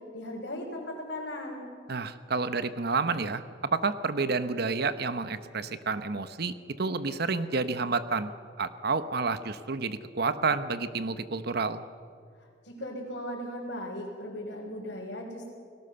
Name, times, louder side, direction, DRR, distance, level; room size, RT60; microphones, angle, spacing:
voice 1, 0.1-1.6 12.4-15.5, left 1 dB, 70° left, -5 dB, 4.1 m, -37 dB
voice 2, 1.9-8.3 8.6-11.8, right 4 dB, 60° right, 12 dB, 1.0 m, -30 dB
29.0 x 18.0 x 6.9 m, 2.3 s
head